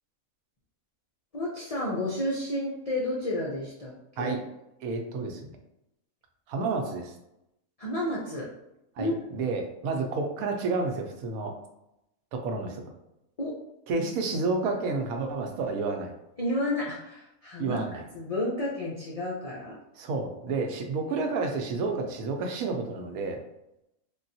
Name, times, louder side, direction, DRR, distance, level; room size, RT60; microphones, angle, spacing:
voice 1, 1.3-4.3 7.8-8.5 9.0-9.1 13.4-13.6 14.0-14.1 16.4-17.8 18.1-19.8, left 1 dB, 70° left, -5 dB, 0.3 m, -31 dB
voice 2, 4.8-5.4 6.5-7.1 9.0-11.5 12.3-12.8 13.9-16.1 17.6-18.0 20.0-23.4, right 3 dB, 90° right, 3 dB, 1.1 m, -30 dB
3.5 x 2.3 x 2.6 m, 0.85 s
omnidirectional pair, 1.4 m